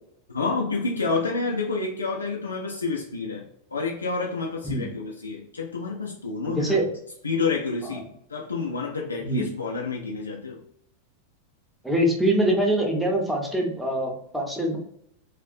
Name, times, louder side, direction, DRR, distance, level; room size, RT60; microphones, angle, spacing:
voice 1, 0.3-3.4 3.7-6.8 7.2-10.6, left 4 dB, 75° left, -1 dB, 0.4 m, -29 dB
voice 2, 6.4-6.9 7.9-8.0 9.2-9.5 11.8-14.8, right 1 dB, 5° right, 0 dB, 0.7 m, -24 dB
2.3 x 2.1 x 2.5 m, 0.73 s
figure-of-eight pair, 90°, 0 cm